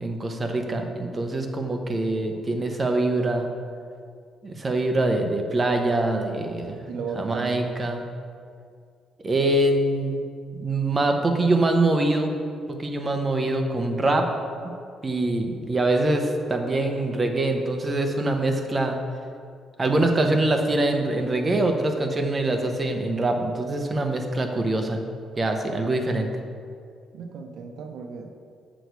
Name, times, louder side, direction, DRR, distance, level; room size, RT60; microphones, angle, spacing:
voice 1, 0.0-3.5 4.4-6.8 7.2-8.0 9.2-10.2 10.5-12.3 12.7-14.3 15.0-19.0 19.8-25.0 25.4-26.3, right 2 dB, 25° right, 4 dB, 0.8 m, -24 dB
voice 2, 6.7-7.7 27.1-28.3, right 5 dB, 65° right, 5 dB, 0.6 m, -35 dB
8.1 x 6.2 x 4.7 m, 2.3 s
cardioid pair, 140°, 0 cm